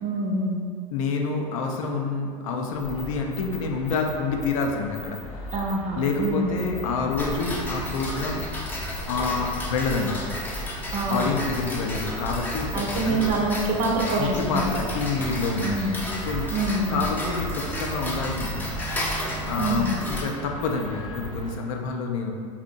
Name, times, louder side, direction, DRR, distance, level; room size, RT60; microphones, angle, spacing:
voice 1, 0.0-0.6 5.5-6.6 10.9-11.3 12.7-14.7 15.6-15.9 16.5-17.0 19.6-19.9, right 2 dB, 45° right, -1 dB, 0.5 m, -26 dB
voice 2, 0.9-5.2 5.9-8.4 9.1-10.2 11.1-13.3 14.2-15.9 16.2-16.5 16.9-18.8 19.5-22.3, left 4 dB, 75° left, 1 dB, 0.4 m, -27 dB
sound 1, 2.7-21.6, left 2 dB, 30° left, 0.8 m, -40 dB
Tick-tock, 7.2-20.2, equal, 10° left, 0.3 m, -32 dB
sound 2, 16.2-21.2, right 5 dB, 80° right, 0.8 m, -40 dB
2.6 x 2.0 x 2.6 m, 2.1 s
hypercardioid pair, 100°, 17 cm